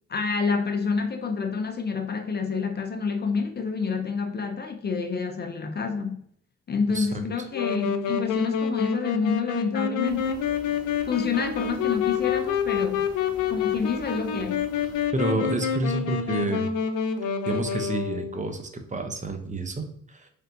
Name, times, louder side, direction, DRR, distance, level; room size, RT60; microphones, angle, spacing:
voice 1, 0.1-6.3 6.7-10.5 11.0-13.1 13.5-14.7, left 5 dB, 35° left, 0.5 m, -28 dB
Wind instrument woodwind instrument, 7.5-18.4, left 7 dB, 80° left, 0.6 m, -27 dB
sound 1, 10.0-15.1, equal, 15° left, 1.6 m, -47 dB
voice 2, 15.1-16.7 17.5-20.3, right 2 dB, 25° right, 0.7 m, -29 dB
4.1 x 3.4 x 2.6 m
cardioid pair, 90°, 30 cm